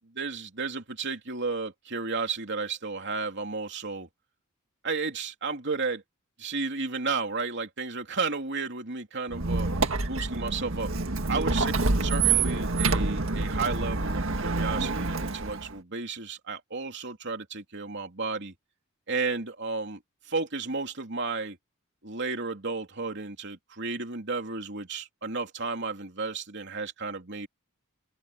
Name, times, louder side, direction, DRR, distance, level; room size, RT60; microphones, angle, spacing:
voice 1, 0.2-4.1 4.8-6.0 6.4-9.7 10.1-10.9 11.3-11.7 12.0-18.5 19.1-20.0 20.3-21.6 22.0-27.5, right 4 dB, 60° right, 3.2 m, -33 dB
Squeak, 9.3-15.7, right 3 dB, 75° right, 1.8 m, -27 dB
open air
head